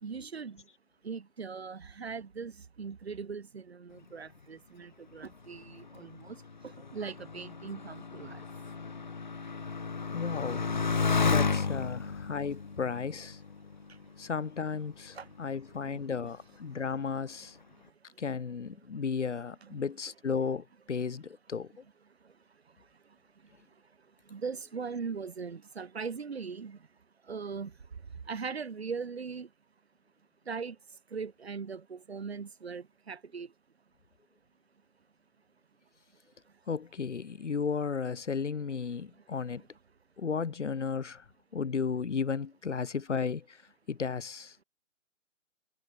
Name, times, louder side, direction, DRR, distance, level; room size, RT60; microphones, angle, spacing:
voice 1, 0.0-0.6 1.0-2.5 2.8-6.4 6.9-8.4 15.1-15.3 15.8-16.0 19.6-19.8 24.3-26.8 27.3-27.7 28.3-29.5 30.5-30.8 31.1-33.5, right 5 dB, 55° right, 5.9 m, -39 dB
Motorcycle, 5.3-14.3 15.1-15.6, left 4 dB, 40° left, 0.7 m, -33 dB
voice 2, 10.1-10.8 11.2-13.4 14.2-17.6 18.2-21.8 36.7-39.6 40.2-41.2 41.5-43.6 43.9-44.6, left 5 dB, 65° left, 2.0 m, -34 dB
hypercardioid pair, 180°, 38 cm